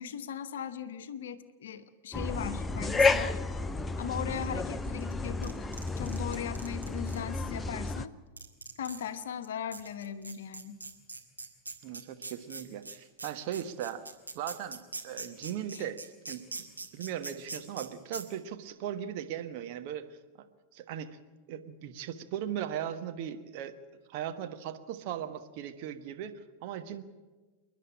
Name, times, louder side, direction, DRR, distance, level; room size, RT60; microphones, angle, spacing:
voice 1, 0.0-3.4 4.0-5.7 6.0-8.1 8.8-10.8 15.7-15.9, left 8 dB, 60° left, 11 dB, 1.1 m, -38 dB
sound 1, 2.1-8.1, left 3 dB, 10° left, 0.6 m, -31 dB
sound 2, 5.0-7.2 7.9-8.0 8.4-9.1 9.4-9.5 9.7-17.9 18.1-18.2, right 3 dB, 85° right, 1.9 m, -41 dB
voice 2, 11.8-14.0 14.3-16.0 16.3-16.6 16.9-20.1 20.7-21.2 21.5-23.7 24.1-27.0, right 10 dB, 45° right, 7 dB, 1.4 m, -38 dB
28.0 x 11.0 x 8.7 m, 1.3 s
figure-of-eight pair, 90°, 0 cm